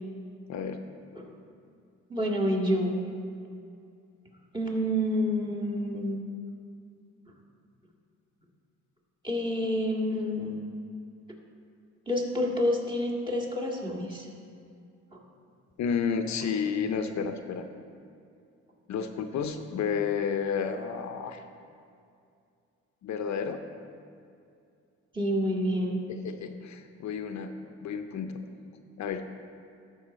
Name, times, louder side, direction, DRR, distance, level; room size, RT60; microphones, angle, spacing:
voice 1, 0.5-0.8 15.8-17.7 18.9-21.4 23.0-23.6 26.1-28.4 29.0-29.3, left 6 dB, 65° left, 7 dB, 0.7 m, -31 dB
voice 2, 2.1-3.0 4.5-6.2 9.2-10.6 12.1-14.3 15.1-15.2 25.1-26.0, equal, 15° right, -2 dB, 1.9 m, -28 dB
13.0 x 5.8 x 4.2 m, 2.4 s
cardioid pair, 90°, 30 cm